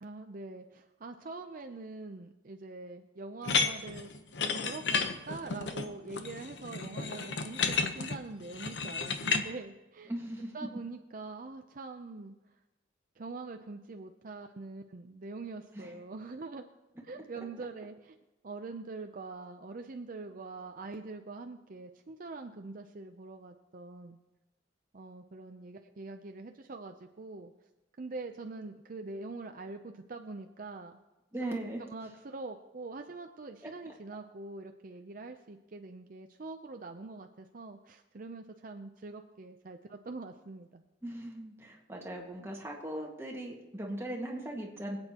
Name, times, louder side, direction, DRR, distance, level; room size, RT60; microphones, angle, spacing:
voice 1, 0.0-4.1 4.6-10.1 10.5-12.5 13.2-16.6 17.0-18.2 18.4-24.2 24.9-27.5 28.0-31.0 31.4-40.8, right 3 dB, 50° right, 5 dB, 0.6 m, -44 dB
sound 1, 3.4-9.4, left 5 dB, 70° left, 0.9 m, -32 dB
voice 2, 10.1-10.6 15.7-15.9 31.3-31.8 41.0-45.0, right 1 dB, 15° right, -1 dB, 1.8 m, -38 dB
25.0 x 8.8 x 2.9 m, 1.1 s
head